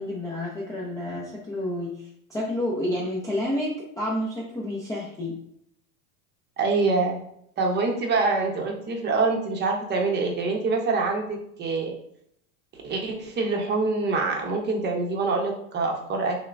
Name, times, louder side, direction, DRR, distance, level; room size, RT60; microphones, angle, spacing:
voice 1, 0.0-5.4, left 1 dB, 10° left, -5 dB, 0.4 m, -30 dB
voice 2, 6.6-7.2 7.6-11.9 12.7-16.4, right 3 dB, 25° right, 1 dB, 0.8 m, -25 dB
5.6 x 2.2 x 2.5 m, 0.72 s
supercardioid pair, 115°, 43 cm